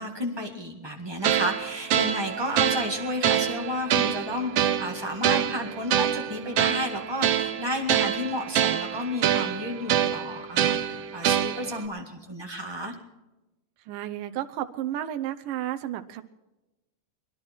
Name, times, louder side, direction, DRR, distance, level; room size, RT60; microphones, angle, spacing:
voice 1, 0.0-12.9, left 1 dB, 20° right, 1 dB, 0.7 m, -32 dB
sound 1, 1.2-11.9, right 9 dB, 75° right, 1.5 m, -26 dB
voice 2, 13.9-16.2, right 12 dB, 90° right, 7 dB, 2.4 m, -32 dB
22.5 x 11.5 x 4.5 m, 1.0 s
omnidirectional pair, 3.7 m